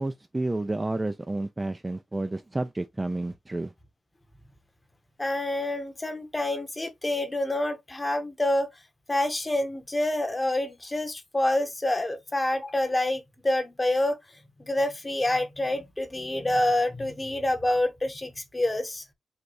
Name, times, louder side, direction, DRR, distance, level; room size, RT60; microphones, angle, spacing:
voice 1, 0.0-3.7, right 2 dB, 15° right, 0.3 m, -30 dB
voice 2, 5.2-8.7 9.1-14.1 14.7-19.0, left 1 dB, 15° left, 1.0 m, -27 dB
5.2 x 2.3 x 4.0 m
wide cardioid pair, 165°, 0 cm